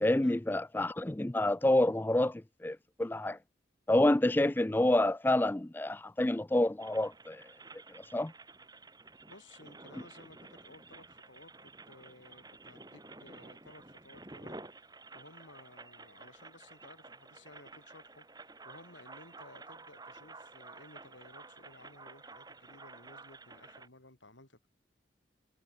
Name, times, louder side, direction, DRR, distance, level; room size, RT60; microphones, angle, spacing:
voice 1, 0.0-3.4 3.9-7.5 7.9-8.3, left 1 dB, 10° left, 0.3 m, -28 dB
sound 1, 6.8-23.9, right 3 dB, 20° right, 3.8 m, -52 dB
voice 2, 9.2-24.7, left 2 dB, 90° left, 6.5 m, -57 dB
head